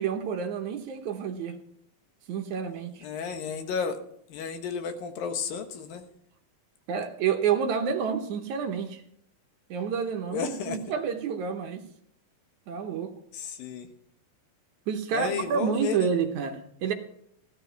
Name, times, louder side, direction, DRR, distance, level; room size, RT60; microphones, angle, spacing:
voice 1, 0.0-1.6 2.3-3.1 6.9-9.0 9.7-11.8 12.7-13.1 14.9-16.9, right 7 dB, 65° right, 2.2 m, -29 dB
voice 2, 3.0-4.0 4.3-6.0 10.3-10.8 13.3-13.9 15.1-16.1, left 6 dB, 85° left, 3.1 m, -32 dB
16.5 x 12.0 x 4.6 m
omnidirectional pair, 4.0 m